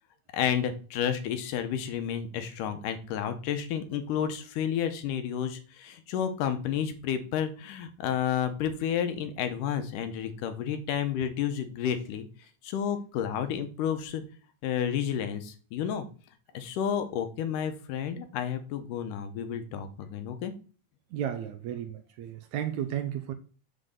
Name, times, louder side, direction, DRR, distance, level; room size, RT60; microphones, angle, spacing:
voice 1, 0.3-12.3 12.6-14.2 14.6-16.1 16.5-20.5, left 8 dB, 80° left, 8 dB, 2.5 m, -31 dB
voice 2, 21.1-23.3, right 10 dB, 75° right, 9 dB, 1.9 m, -33 dB
7.7 x 4.0 x 6.7 m, 0.37 s
omnidirectional pair, 3.8 m